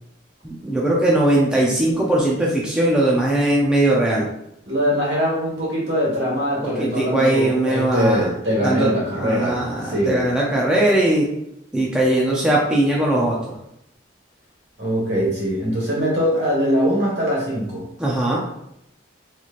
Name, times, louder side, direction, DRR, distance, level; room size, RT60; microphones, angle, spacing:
voice 1, 0.4-4.3 6.8-8.2 8.6-8.9 9.2-11.3 11.7-13.4 18.0-18.4, right 1 dB, 5° right, -5 dB, 0.4 m, -19 dB
voice 2, 4.7-10.3 14.8-17.8, equal, 60° right, -4 dB, 1.5 m, -22 dB
4.0 x 3.0 x 2.5 m, 0.78 s
head